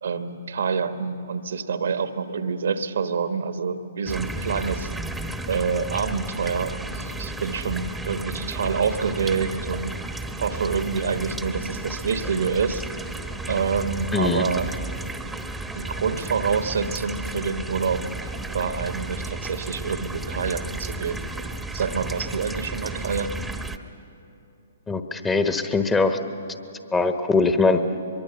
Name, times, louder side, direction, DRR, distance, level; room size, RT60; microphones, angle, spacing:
voice 1, 0.0-4.9 5.5-9.9 10.4-12.8 13.5-14.7 15.7-21.3 21.7-23.3, right 5 dB, 70° right, 9 dB, 1.3 m, -27 dB
sound 1, 4.1-23.8, right 2 dB, 5° right, 1.0 m, -33 dB
voice 2, 14.1-14.4 24.9-26.2 26.9-27.8, left 3 dB, 15° left, 7 dB, 1.2 m, -21 dB
23.5 x 23.0 x 7.0 m, 2.7 s
hypercardioid pair, 130°, 0 cm